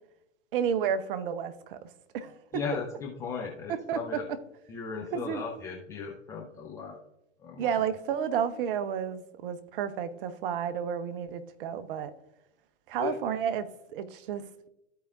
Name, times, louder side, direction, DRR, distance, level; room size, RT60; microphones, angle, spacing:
voice 1, 0.5-2.6 3.7-4.0 5.1-5.4 7.6-12.1 12.9-14.7, right 8 dB, 45° right, 0.8 m, -31 dB
voice 2, 2.5-4.3 4.7-7.0 7.4-7.7 13.0-13.2, left 5 dB, 10° left, 0.3 m, -36 dB
14.5 x 4.8 x 2.4 m
figure-of-eight pair, 110°, 38 cm